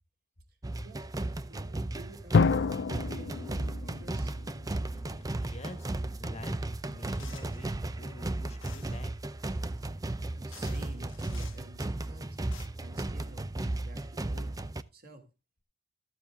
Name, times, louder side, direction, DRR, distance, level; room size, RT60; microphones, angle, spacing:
sound 1, 0.6-14.8, right 2 dB, 20° right, 0.5 m, -35 dB
voice 1, 0.8-2.7 3.0-4.3 10.3-12.4 12.8-14.6 14.9-15.2, right 2 dB, 50° right, 4 dB, 2.8 m, -50 dB
Drum, 2.3-5.1, left 5 dB, 55° left, 0.4 m, -28 dB
voice 2, 4.9-6.6 6.9-7.7 8.0-9.1, left 1 dB, 35° left, 9 dB, 1.4 m, -48 dB
sound 2, 7.2-7.7 8.6-9.1 10.0-10.1 10.5-11.6 12.3-12.7, left 9 dB, 75° left, 1.3 m, -52 dB
13.5 x 7.6 x 3.6 m, 0.29 s
head